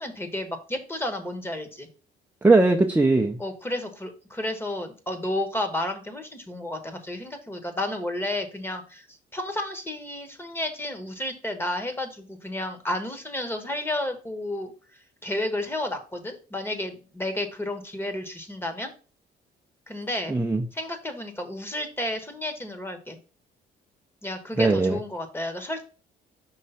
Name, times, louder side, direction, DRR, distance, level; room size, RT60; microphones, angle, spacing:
voice 1, 0.0-1.9 3.4-9.1 9.3-14.7 15.2-18.9 19.9-20.3 20.7-23.2 24.2-25.8, left 1 dB, 10° left, 7 dB, 1.2 m, -31 dB
voice 2, 2.4-3.4 20.3-20.6 24.6-25.0, right 3 dB, 10° right, 0 dB, 0.6 m, -19 dB
5.6 x 3.1 x 5.6 m, 0.36 s
cardioid pair, 105°, 18 cm